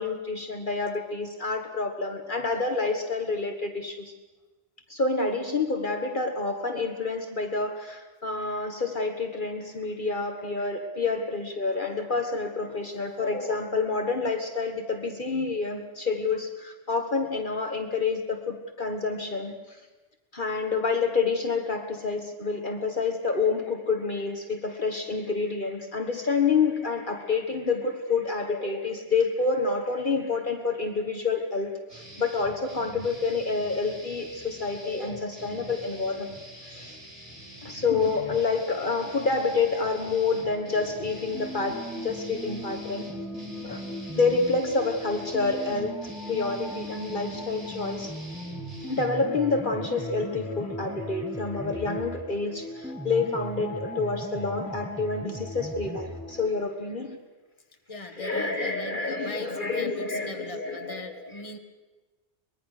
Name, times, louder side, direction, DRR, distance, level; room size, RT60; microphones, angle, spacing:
voice 1, 0.0-4.1 4.9-19.8 20.3-36.4 36.6-37.0 37.6-43.1 43.6-43.8 44.1-48.1 48.9-57.2 58.0-61.3, left 4 dB, 45° left, 5 dB, 1.7 m, -28 dB
sound 1, 31.9-49.1, right 1 dB, 85° right, 4.8 m, -45 dB
sound 2, 38.2-56.5, left 2 dB, 80° left, 2.4 m, -42 dB
sound 3, 41.3-44.6 45.3-52.3 52.8-56.3, right 1 dB, 5° right, 1.1 m, -39 dB
voice 2, 57.9-61.6, left 3 dB, 30° left, 5 dB, 1.8 m, -39 dB
23.5 x 21.0 x 6.7 m, 1.2 s
omnidirectional pair, 1.2 m